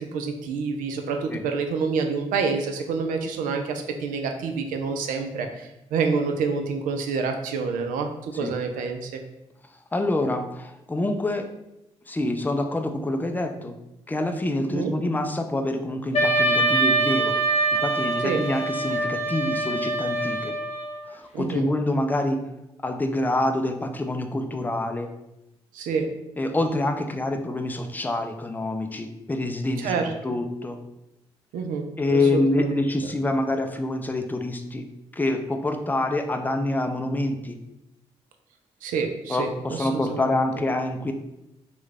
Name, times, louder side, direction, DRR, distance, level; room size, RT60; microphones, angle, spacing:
voice 1, 0.1-8.1 8.4-9.2 14.7-14.9 18.2-18.4 21.3-21.6 25.7-26.1 29.8-30.3 31.5-32.8 38.8-40.3, right 5 dB, 75° right, 5 dB, 0.4 m, -28 dB
voice 2, 9.9-11.5 12.1-13.8 14.1-17.4 17.8-20.5 21.1-22.4 22.8-25.1 26.4-30.0 30.2-30.8 32.0-34.9 35.1-37.6 39.3-41.1, left 2 dB, 15° left, 6 dB, 0.4 m, -26 dB
Wind instrument woodwind instrument, 16.1-21.0, right 2 dB, 50° left, 0.8 m, -24 dB
3.1 x 2.2 x 3.5 m, 0.90 s
hypercardioid pair, 40°, 14 cm